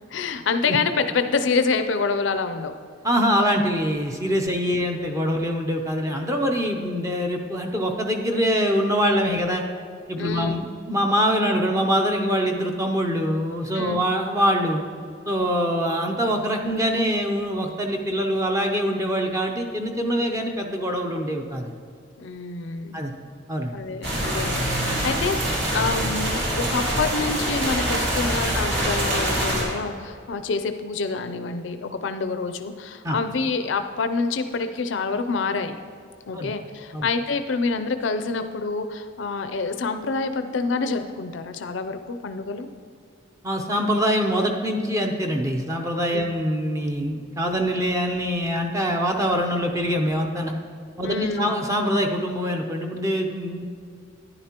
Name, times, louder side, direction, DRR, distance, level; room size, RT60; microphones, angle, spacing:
voice 1, 0.1-2.7 10.2-10.6 13.7-14.0 22.2-23.0 23.7-35.8 36.3-42.7 46.1-46.3 51.0-51.5, left 4 dB, 70° left, 9 dB, 0.5 m, -27 dB
voice 2, 3.0-9.6 10.1-14.8 15.3-21.7 22.9-23.1 23.5-23.7 33.0-33.2 36.3-36.5 36.9-37.1 43.4-50.5 51.0-53.7, equal, 15° right, 2 dB, 0.6 m, -24 dB
sound 1, 24.0-29.6, right 1 dB, 60° right, 2.5 m, -24 dB
10.5 x 10.0 x 2.9 m, 2.3 s
head